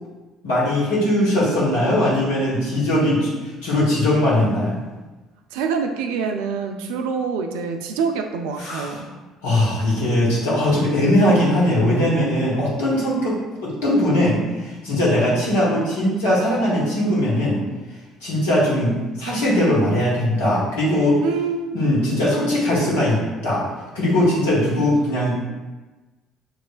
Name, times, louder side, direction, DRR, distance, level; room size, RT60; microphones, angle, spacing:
voice 1, 0.4-4.8 8.6-9.0 9.4-13.4 13.6-17.6 18.2-21.2 21.7-23.6 23.9-25.3, left 1 dB, 75° left, -6 dB, 1.4 m, -20 dB
voice 2, 5.5-9.1 21.2-21.8, right 5 dB, 70° right, 5 dB, 0.4 m, -25 dB
6.0 x 3.2 x 2.4 m, 1.2 s
figure-of-eight pair, 55°, 0 cm